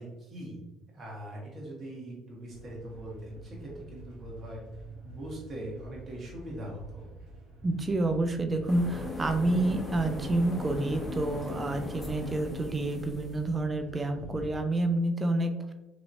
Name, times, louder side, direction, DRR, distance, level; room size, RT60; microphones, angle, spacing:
voice 1, 0.0-4.6 5.0-7.1, right 1 dB, 45° right, -3 dB, 1.2 m, -41 dB
sound 1, 2.5-14.7, right 1 dB, 65° right, 1.1 m, -48 dB
voice 2, 7.6-15.6, right 2 dB, 25° right, 6 dB, 0.4 m, -28 dB
sound 2, 8.7-13.5, left 1 dB, 20° left, 0.8 m, -38 dB
3.0 x 2.7 x 2.6 m, 1.0 s
supercardioid pair, 80°, 0 cm